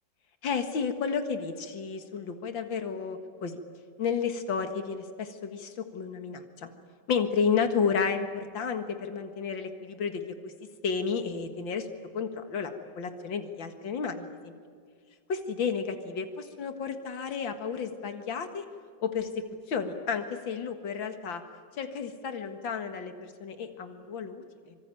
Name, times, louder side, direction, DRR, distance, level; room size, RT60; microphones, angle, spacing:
voice 1, 0.4-3.6 4.0-6.7 7.1-10.5 10.8-11.9 12.1-14.6 15.3-18.6 19.0-19.3 19.7-21.4 21.8-24.8, left 6 dB, 90° left, 7 dB, 2.4 m, -32 dB
26.0 x 25.0 x 9.1 m, 2.1 s
omnidirectional pair, 2.0 m